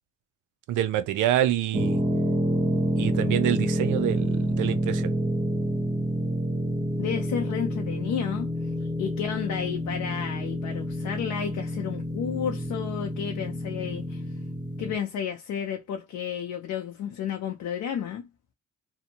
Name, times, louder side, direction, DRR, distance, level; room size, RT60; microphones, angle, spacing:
voice 1, 0.7-2.0 3.0-5.1, right 12 dB, 85° right, 0.5 m, -26 dB
sound 1, 1.7-14.9, equal, 15° right, 0.8 m, -28 dB
voice 2, 7.0-8.5 9.0-14.2 14.8-18.3, left 8 dB, 75° left, 0.6 m, -32 dB
2.6 x 2.1 x 2.7 m
cardioid pair, 90°, 30 cm